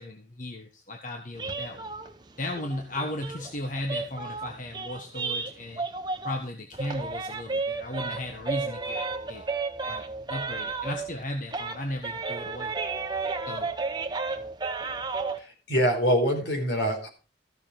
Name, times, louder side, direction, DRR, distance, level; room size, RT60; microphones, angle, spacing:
voice 1, 0.0-1.9 2.4-5.9 6.2-9.0 9.3-9.4 9.9-10.0 10.3-12.7 13.5-13.7, left 1 dB, 45° left, 4 dB, 1.4 m, -35 dB
sound 1, 1.3-6.5 6.7-11.2 11.5-15.4, right 4 dB, 25° right, 1.1 m, -33 dB
voice 2, 15.4-17.1, equal, 75° left, 3 dB, 4.4 m, -25 dB
14.5 x 6.8 x 5.1 m, 0.34 s
head